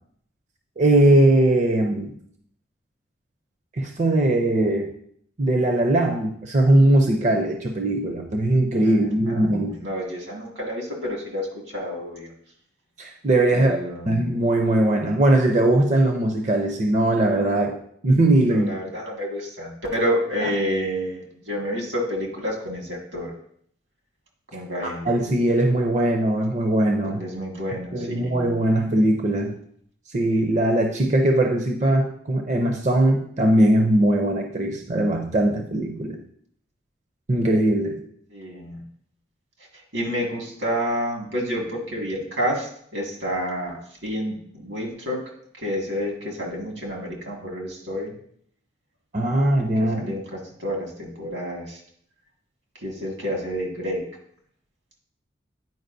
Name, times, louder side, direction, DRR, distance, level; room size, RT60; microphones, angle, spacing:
voice 1, 0.8-2.1 3.8-4.9 5.4-9.7 13.0-13.8 14.1-18.7 20.4-20.5 25.1-27.2 27.9-29.6 30.1-36.2 37.3-38.0 49.1-50.0, right 1 dB, 40° right, 3 dB, 0.5 m, -20 dB
voice 2, 8.8-12.3 13.5-14.3 18.5-23.3 24.5-25.1 27.0-28.5 38.3-38.8 39.9-45.2 45.5-48.1 49.8-51.8 52.8-54.0, equal, 85° right, -1 dB, 1.9 m, -29 dB
9.2 x 4.9 x 2.6 m, 0.66 s
head